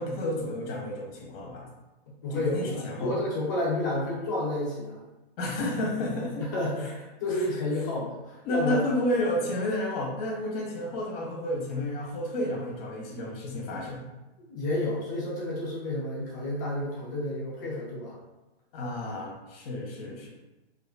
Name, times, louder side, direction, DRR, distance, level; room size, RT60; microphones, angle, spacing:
voice 1, 0.0-1.7 2.3-3.2 5.4-6.5 6.8-6.9 7.3-7.5 8.4-14.0 18.7-20.3, left 1 dB, 35° left, -2 dB, 0.7 m, -31 dB
voice 2, 2.2-5.0 6.4-8.8 14.4-18.2, left 1 dB, 20° left, -6 dB, 0.3 m, -30 dB
2.4 x 2.3 x 2.3 m, 1.0 s
hypercardioid pair, 145°, 33 cm